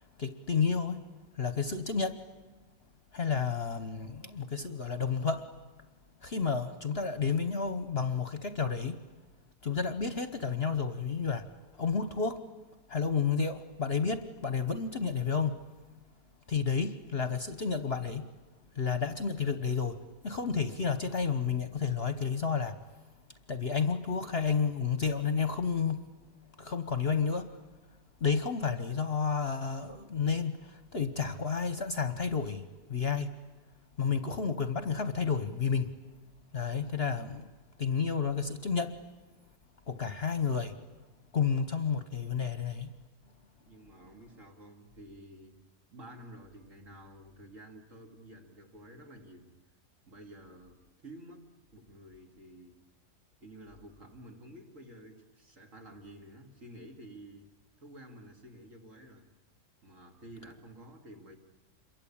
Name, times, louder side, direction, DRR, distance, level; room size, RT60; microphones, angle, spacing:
voice 1, 0.2-1.0 1.4-2.1 3.1-5.4 6.2-9.0 9.6-11.4 11.8-12.4 12.9-15.5 16.5-18.2 18.8-19.9 20.2-22.7 23.5-26.0 26.6-27.5 28.2-30.6 30.9-32.6 32.9-33.3 34.0-35.9 36.5-37.5 37.8-38.9 39.9-40.7 41.3-42.9, left 5 dB, 40° left, 10 dB, 1.2 m, -31 dB
voice 2, 43.6-45.6 45.9-49.5 50.1-52.8 53.4-57.5 57.8-59.3 59.8-61.4, right 1 dB, 50° right, 3 dB, 3.2 m, -51 dB
28.0 x 23.0 x 8.8 m, 1.2 s
omnidirectional pair, 1.7 m